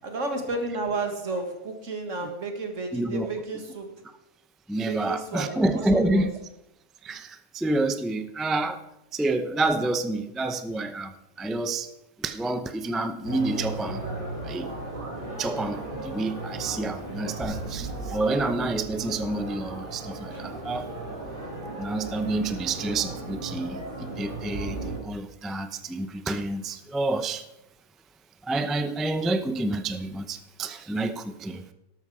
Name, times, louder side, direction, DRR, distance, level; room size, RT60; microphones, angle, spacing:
voice 1, 0.0-4.0 4.8-6.2, right 3 dB, 60° right, 5 dB, 2.1 m, -32 dB
voice 2, 2.9-3.3 4.7-6.3 7.0-8.8 9.1-11.1 11.4-11.9 12.2-14.0 14.4-14.7 15.4-20.9 21.8-27.4 28.4-31.7, right 2 dB, ahead, 9 dB, 0.4 m, -28 dB
sound 1, 13.2-25.0, right 2 dB, 35° right, 5.0 m, -36 dB
sound 2, 17.4-20.3, right 2 dB, 35° left, 3.6 m, -40 dB
13.0 x 12.5 x 4.9 m, 0.89 s
omnidirectional pair, 1.5 m